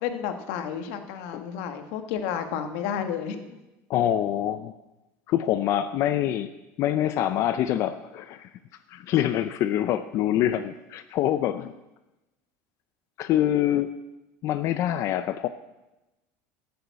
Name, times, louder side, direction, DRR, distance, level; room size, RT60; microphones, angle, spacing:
voice 1, 0.0-3.6, left 8 dB, 75° left, 7 dB, 1.4 m, -31 dB
voice 2, 3.9-4.7 5.3-6.5 6.8-8.5 8.9-11.7 13.2-13.9 14.4-15.5, left 11 dB, 50° left, 11 dB, 0.5 m, -25 dB
12.5 x 6.9 x 8.1 m, 1.0 s
cardioid pair, 145°, 7 cm